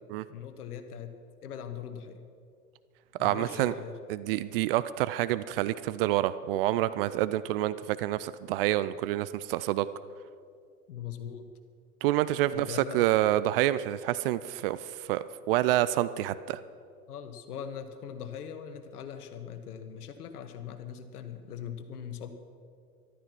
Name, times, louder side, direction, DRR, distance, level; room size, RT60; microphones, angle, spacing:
voice 1, 0.3-1.1 1.4-2.2 3.2-4.0 10.9-11.5 12.5-13.0 17.1-22.3, left 8 dB, 70° left, 8 dB, 1.5 m, -41 dB
voice 2, 3.2-3.7 4.1-9.9 12.0-16.6, right 14 dB, 40° right, 15 dB, 0.4 m, -28 dB
13.5 x 12.0 x 6.0 m, 2.3 s
hypercardioid pair, 100°, 47 cm